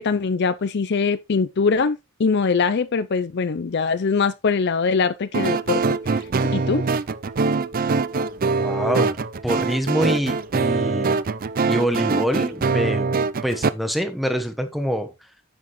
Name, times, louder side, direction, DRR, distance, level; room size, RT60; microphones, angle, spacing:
voice 1, 0.0-5.8 6.5-6.8, left 5 dB, 50° left, 0.5 m, -22 dB
sound 1, 5.3-13.7, right 4 dB, 40° right, 0.4 m, -23 dB
voice 2, 8.6-9.2 9.4-11.2 11.7-13.1 13.4-15.1, equal, ahead, 1.1 m, -25 dB
9.7 x 7.3 x 3.1 m
head